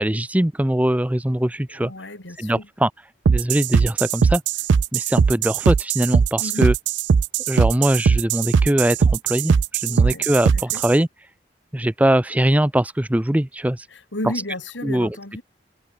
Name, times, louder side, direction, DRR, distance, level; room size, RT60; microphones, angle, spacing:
voice 1, 0.0-1.9 2.4-2.9 3.3-4.4 4.9-6.7 7.5-11.1 11.7-13.9 14.8-15.2, right 1 dB, 10° right, 0.5 m, -21 dB
voice 2, 1.7-2.7 6.4-6.7 9.9-10.3 10.5-10.8 13.9-15.4, left 1 dB, 90° left, 3.7 m, -33 dB
sound 1, 3.2-10.9, right 6 dB, 75° right, 0.4 m, -19 dB
head